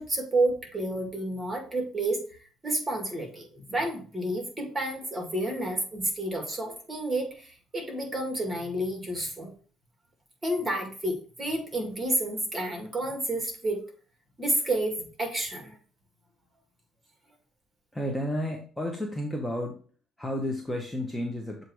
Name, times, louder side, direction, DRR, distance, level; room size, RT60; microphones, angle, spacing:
voice 1, 0.0-2.2 2.6-9.5 10.4-13.8 14.4-15.7, right 1 dB, 20° right, 3 dB, 2.0 m, -30 dB
voice 2, 17.9-19.8 20.2-21.6, left 1 dB, 5° left, 1 dB, 0.9 m, -32 dB
7.3 x 2.7 x 4.7 m, 0.41 s
cardioid pair, 105°, 0 cm